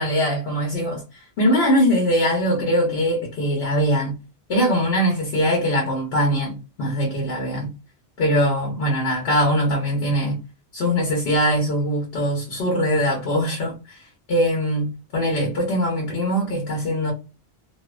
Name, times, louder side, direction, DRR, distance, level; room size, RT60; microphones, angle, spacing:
voice 1, 0.0-4.2 4.5-7.7 8.2-10.4 10.7-17.1, equal, 75° left, 1.0 m, -22 dB
2.5 x 2.1 x 2.3 m
omnidirectional pair, 1.1 m